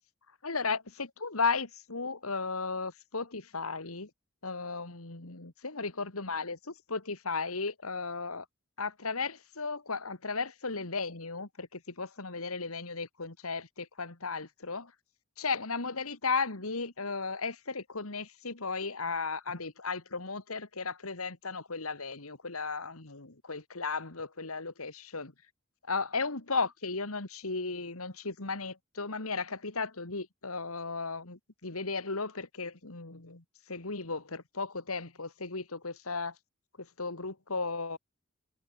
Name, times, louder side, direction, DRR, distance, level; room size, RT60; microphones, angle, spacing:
voice 1, 0.4-4.1 4.4-6.6 6.9-8.4 8.8-14.9 15.4-25.3 25.9-36.3 36.8-38.0, left 4 dB, 90° left, 2.5 m, -35 dB
head